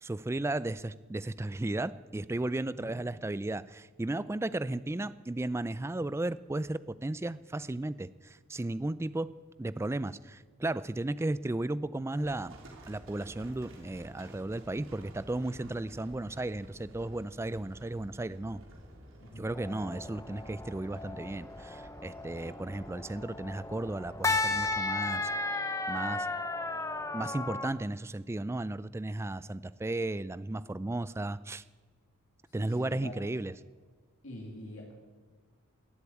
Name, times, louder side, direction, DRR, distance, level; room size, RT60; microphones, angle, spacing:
voice 1, 0.0-9.3 9.6-12.6 12.9-18.6 19.4-25.3 25.9-26.3 27.1-31.6 32.5-33.5, right 2 dB, 15° right, 16 dB, 0.3 m, -34 dB
voice 2, 2.7-3.0 19.2-19.5 32.5-33.2 34.2-34.9, left 1 dB, 70° left, -2 dB, 2.7 m, -45 dB
Livestock farm animals working animals, 12.2-24.7, equal, 65° right, 3.3 m, -52 dB
sound 1, 19.5-27.7, left 3 dB, 15° left, 0.8 m, -35 dB
17.0 x 8.3 x 8.5 m, 1.5 s
head